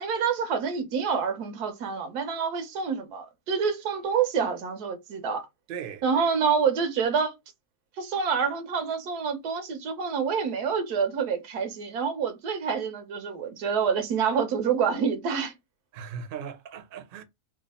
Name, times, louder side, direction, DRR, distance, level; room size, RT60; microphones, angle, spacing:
voice 1, 0.0-5.4 6.0-7.3 8.0-15.5, right 6 dB, 90° right, 1.3 m, -27 dB
voice 2, 5.7-6.0 15.9-17.2, right 7 dB, 55° right, 0.6 m, -38 dB
3.2 x 2.4 x 4.1 m
omnidirectional pair, 1.6 m